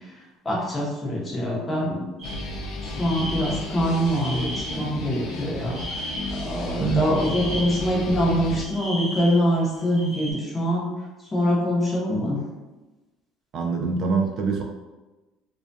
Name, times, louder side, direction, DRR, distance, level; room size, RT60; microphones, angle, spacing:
voice 1, 0.4-2.0 3.0-5.8 6.4-10.9 11.3-12.4, equal, 20° left, -4 dB, 0.8 m, -24 dB
sound 1, 2.2-8.6, left 2 dB, 65° left, 0.3 m, -33 dB
sound 2, 2.2-2.4 2.7-5.0 5.5-6.6 7.0-8.1 8.5-10.3, equal, 25° right, 1.1 m, -36 dB
voice 2, 6.8-7.1 13.5-14.6, right 5 dB, 50° right, 2 dB, 0.3 m, -24 dB
2.3 x 2.2 x 2.6 m, 1.1 s
cardioid pair, 125°, 0 cm